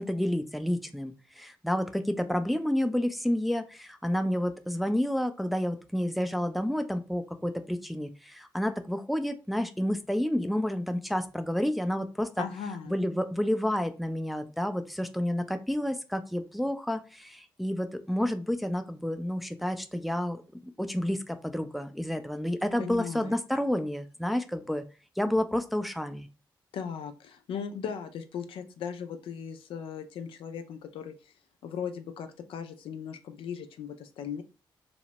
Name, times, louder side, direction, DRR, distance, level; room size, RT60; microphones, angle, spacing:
voice 1, 0.0-12.4 12.9-24.8 25.2-26.3, left 1 dB, ahead, 7 dB, 0.4 m, -30 dB
voice 2, 12.4-12.9 22.8-23.3 26.7-31.1 31.6-34.4, left 7 dB, 75° left, 7 dB, 0.4 m, -37 dB
2.9 x 2.1 x 2.8 m, 0.33 s
supercardioid pair, 50°, 9 cm